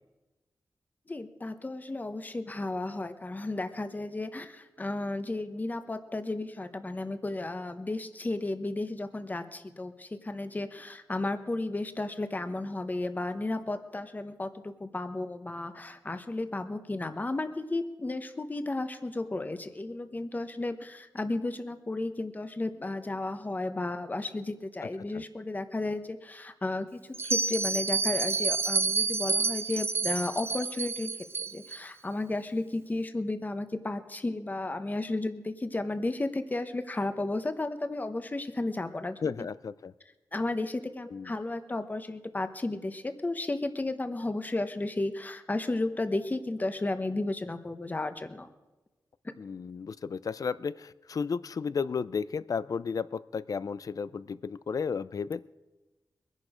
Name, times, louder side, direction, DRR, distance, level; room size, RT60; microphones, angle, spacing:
voice 1, 1.1-31.1 31.4-39.5 40.3-48.5, left 2 dB, 25° left, 9 dB, 1.0 m, -33 dB
Bell, 27.1-31.8, right 3 dB, 35° right, 0.4 m, -29 dB
voice 2, 39.2-39.9 41.1-41.3 49.4-55.4, left 5 dB, 55° left, 17 dB, 0.5 m, -33 dB
22.5 x 10.5 x 5.0 m, 1.1 s
wide cardioid pair, 130°, 7 cm